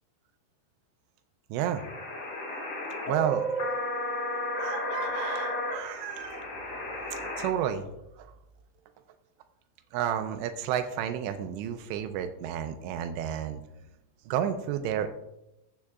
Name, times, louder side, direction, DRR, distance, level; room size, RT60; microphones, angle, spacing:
voice 1, 1.5-1.8 3.1-3.5 4.6-6.5 6.9-7.9 8.2-8.3 9.9-13.6 14.3-15.1, right 9 dB, 85° right, 8 dB, 2.8 m, -31 dB
sound 1, 1.8-7.5, left 1 dB, 50° left, 1.7 m, -33 dB
15.0 x 7.3 x 2.4 m, 0.88 s
omnidirectional pair, 5.1 m